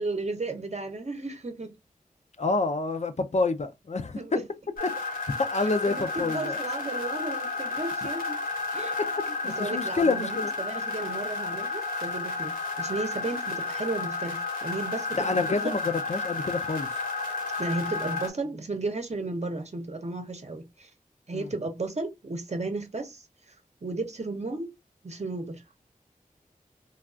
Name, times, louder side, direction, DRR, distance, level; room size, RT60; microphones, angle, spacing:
voice 1, 0.0-1.7 4.1-4.4 5.8-8.4 8.7-9.0 9.4-15.6 17.6-20.9 21.3-23.3 23.8-24.7 25.0-25.6, right 2 dB, 50° right, 0.7 m, -34 dB
voice 2, 2.4-4.2 5.4-6.6 9.4-10.5 15.2-16.9 21.3-21.5, left 3 dB, 50° left, 0.4 m, -28 dB
sound 1, 4.8-18.3, left 4 dB, 80° left, 1.3 m, -32 dB
3.4 x 2.3 x 2.4 m
wide cardioid pair, 50°, 15 cm